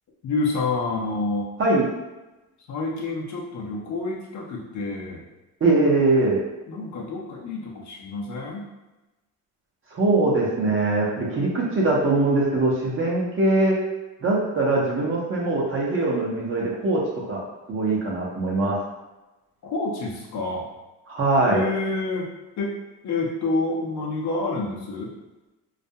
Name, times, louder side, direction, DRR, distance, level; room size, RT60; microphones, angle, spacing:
voice 1, 0.2-1.5 2.7-5.2 6.7-8.7 19.6-20.7 21.4-22.3 22.6-22.8 23.0-25.1, left 3 dB, 50° left, -2 dB, 0.6 m, -28 dB
voice 2, 5.6-6.4 9.9-13.8 14.2-17.4 17.7-18.8 21.1-21.6, right 2 dB, 35° right, -4 dB, 0.7 m, -22 dB
2.3 x 2.1 x 2.7 m, 1.0 s
cardioid pair, 110°, 38 cm